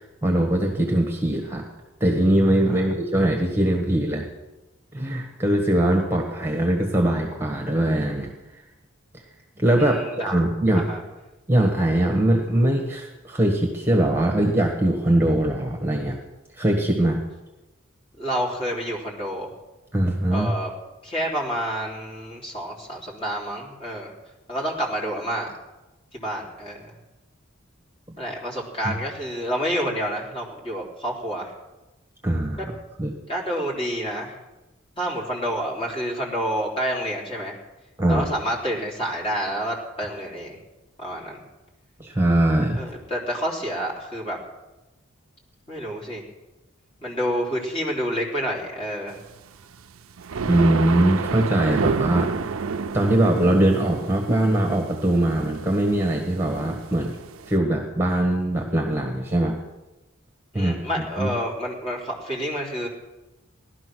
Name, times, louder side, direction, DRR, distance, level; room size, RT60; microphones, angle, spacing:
voice 1, 0.0-1.6 2.0-4.2 4.9-8.3 9.6-10.8 11.5-16.2 16.6-17.2 19.9-20.5 28.8-28.9 32.2-32.7 33.0-33.1 38.0-38.3 42.0-42.8 50.5-52.3 52.9-57.2 57.5-59.6 60.5-60.8 61.2-61.3, right 1 dB, 10° right, 2 dB, 1.5 m, -21 dB
voice 2, 9.8-10.1 10.7-11.0 18.2-19.5 20.3-20.7 21.0-24.1 24.5-25.5 26.1-26.9 28.2-31.5 33.3-34.4 35.0-37.6 38.1-40.6 41.0-41.4 42.7-44.4 45.7-46.2 47.0-49.2 60.5-62.9, equal, 25° left, -3 dB, 3.5 m, -28 dB
sound 1, 49.5-57.5, right 5 dB, 90° right, 0.6 m, -30 dB
17.5 x 12.0 x 6.2 m, 1.0 s
head